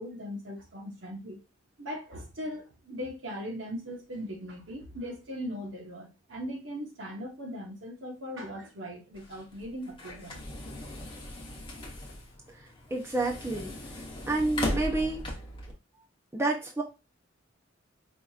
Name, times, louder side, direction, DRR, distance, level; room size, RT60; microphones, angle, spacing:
voice 1, 0.0-1.4 1.8-10.4, equal, 75° right, 1.1 m, -39 dB
sound 1, 9.1-15.7, left 1 dB, 25° left, 0.9 m, -38 dB
voice 2, 12.9-13.7 14.3-15.2 16.3-16.8, right 2 dB, 15° right, 0.6 m, -29 dB
4.9 x 2.8 x 2.4 m
head